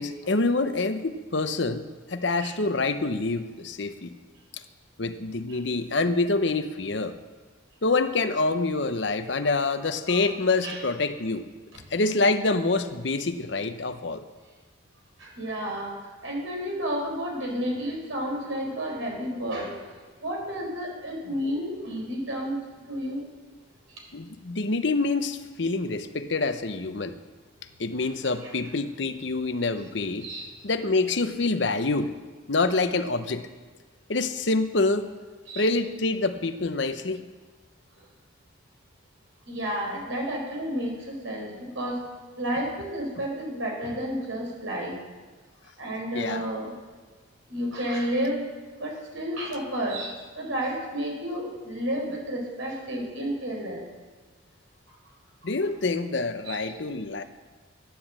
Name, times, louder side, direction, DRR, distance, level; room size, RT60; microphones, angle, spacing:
voice 1, 0.0-4.1 4.5-4.6 5.0-7.2 7.8-11.5 11.9-14.2 24.1-27.2 27.8-30.3 30.6-32.1 32.5-33.5 34.1-35.1 35.6-37.2 46.1-46.4 55.4-57.2, left 3 dB, 60° left, 9 dB, 0.9 m, -26 dB
voice 2, 15.2-15.9 16.2-19.9 20.2-22.6 22.9-23.3 23.9-24.0 30.2-30.5 35.5-35.7 39.5-42.0 42.4-45.0 45.8-46.7 47.5-48.5 48.8-53.8 54.9-55.0 56.4-56.6, equal, 80° right, -1 dB, 4.4 m, -31 dB
12.0 x 10.0 x 7.4 m, 1.4 s
head